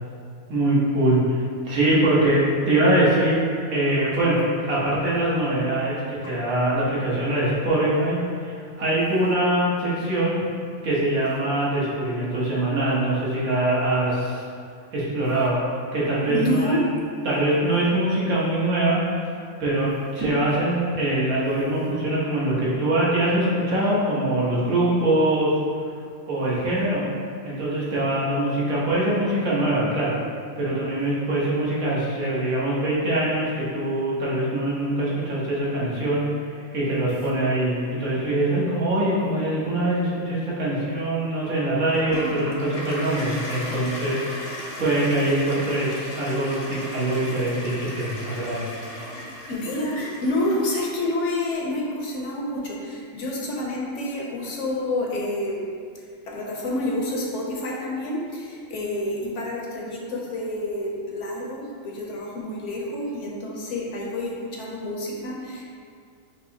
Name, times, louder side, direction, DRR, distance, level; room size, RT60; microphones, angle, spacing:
voice 1, 0.5-3.4 3.7-10.4 10.8-14.4 14.9-15.6 15.9-16.8 17.2-19.0 19.6-25.6 26.3-27.0 27.4-30.2 30.6-36.2 36.7-44.2 44.8-48.7, right 1 dB, 80° right, -7 dB, 1.5 m, -23 dB
voice 2, 16.3-16.8 49.5-65.6, left 1 dB, 65° left, -3 dB, 0.9 m, -28 dB
Toilet flush, 41.9-51.1, left 1 dB, 45° left, 0.5 m, -36 dB
5.3 x 2.9 x 2.7 m, 2.2 s
omnidirectional pair, 1.5 m